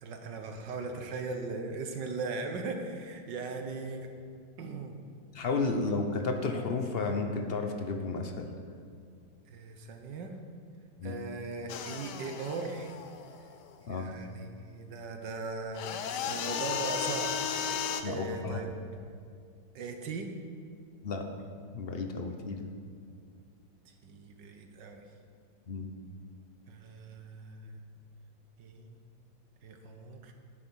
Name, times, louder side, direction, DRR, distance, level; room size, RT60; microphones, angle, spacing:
voice 1, 0.0-4.1 4.6-5.0 9.5-10.3 11.0-12.9 13.9-18.7 19.7-20.3 24.0-25.0 26.7-27.8 28.6-29.0 29.6-30.3, right 3 dB, 65° right, 5 dB, 1.7 m, -39 dB
voice 2, 5.3-8.5 11.0-11.2 13.9-14.1 18.0-18.6 21.0-21.2 21.7-22.7 25.7-25.9, left 3 dB, 45° left, 4 dB, 0.8 m, -32 dB
sound 1, 11.7-13.7 15.7-18.0, left 8 dB, 65° left, 1.2 m, -35 dB
10.5 x 9.1 x 6.3 m, 2.3 s
omnidirectional pair, 2.1 m